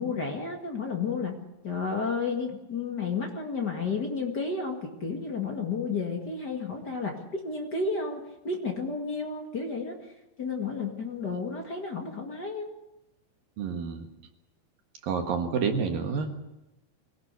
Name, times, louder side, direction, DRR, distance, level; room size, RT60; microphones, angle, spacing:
voice 1, 0.0-1.4 1.6-10.1 10.4-12.7, left 4 dB, 50° left, 2 dB, 1.2 m, -32 dB
voice 2, 13.6-14.1 15.0-16.4, right 5 dB, 60° right, 4 dB, 2.9 m, -29 dB
24.0 x 17.5 x 8.3 m, 0.96 s
omnidirectional pair, 5.2 m